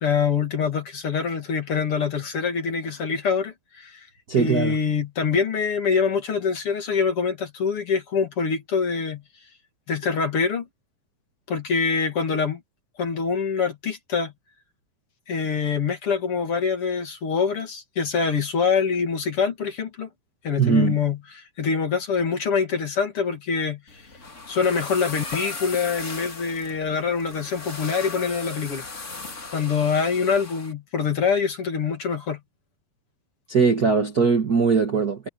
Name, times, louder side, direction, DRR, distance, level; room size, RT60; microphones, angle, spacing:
voice 1, 0.0-4.0 4.4-9.2 9.9-10.7 11.5-12.6 13.0-14.3 15.3-20.1 20.4-23.8 24.5-28.9 29.5-32.4, left 5 dB, 45° left, 2.6 m, -25 dB
voice 2, 4.3-4.8 20.6-21.0 33.5-35.3, right 5 dB, 90° right, 0.8 m, -20 dB
sound 1, 23.9-30.7, left 3 dB, 25° left, 2.2 m, -37 dB
omnidirectional pair, 4.4 m